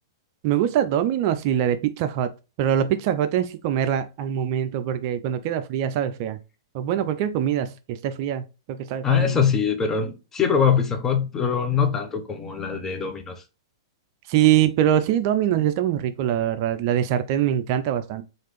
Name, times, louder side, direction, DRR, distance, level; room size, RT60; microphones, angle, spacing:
voice 1, 0.4-2.3 2.6-6.4 6.7-9.4 14.3-18.2, right 10 dB, 45° right, 0.3 m, -23 dB
voice 2, 9.0-13.3, left 7 dB, 15° left, 0.6 m, -23 dB
3.2 x 2.5 x 3.0 m
hypercardioid pair, 120°, 2 cm